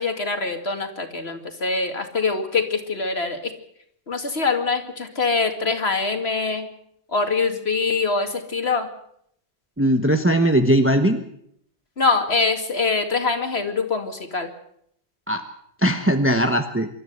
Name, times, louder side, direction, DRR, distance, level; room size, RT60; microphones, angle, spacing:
voice 1, 0.0-3.5 4.1-6.7 7.1-8.9 12.0-14.5, left 4 dB, 70° left, 6 dB, 2.5 m, -24 dB
voice 2, 9.8-11.2 15.3-15.4 15.8-16.9, right 1 dB, 10° right, 6 dB, 1.2 m, -19 dB
26.0 x 13.0 x 8.0 m, 0.71 s
omnidirectional pair, 1.1 m